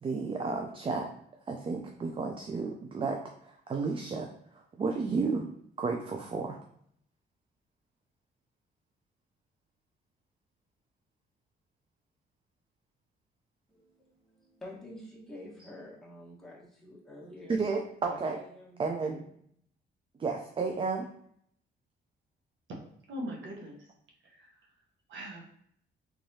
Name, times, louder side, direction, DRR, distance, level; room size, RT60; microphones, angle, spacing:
voice 1, 0.0-1.1 1.5-4.3 4.8-5.5 5.8-6.6 17.5-18.4 18.8-19.2 20.2-21.1, right 4 dB, 25° right, 3 dB, 0.4 m, -32 dB
voice 2, 13.7-17.7 18.1-19.3, left 1 dB, ahead, -6 dB, 1.2 m, -49 dB
voice 3, 23.1-23.9 24.2-24.7 25.1-25.4, equal, 70° right, -1 dB, 0.9 m, -41 dB
3.4 x 3.2 x 2.7 m, 0.68 s
cardioid pair, 90°, 20 cm